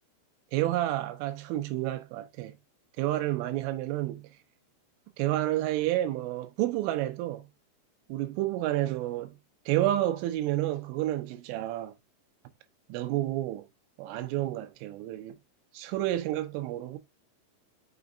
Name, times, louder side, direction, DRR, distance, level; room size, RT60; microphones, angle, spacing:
voice 1, 0.5-2.5 3.0-4.3 5.2-7.4 8.1-9.3 9.7-11.9 12.9-13.7 14.0-15.4 15.7-17.0, right 14 dB, 80° right, 3.3 m, -30 dB
6.1 x 5.9 x 2.7 m
omnidirectional pair, 5.9 m